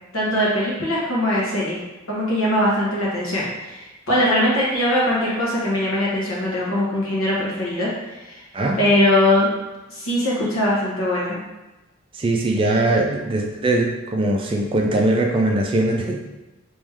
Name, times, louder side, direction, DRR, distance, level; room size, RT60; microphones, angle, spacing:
voice 1, 0.1-1.8 2.1-8.4 8.7-9.5 9.9-11.4, left 1 dB, 75° left, -5 dB, 1.3 m, -21 dB
voice 2, 12.1-16.2, right 2 dB, 25° right, 1 dB, 0.3 m, -21 dB
3.3 x 3.0 x 3.5 m, 1.1 s
head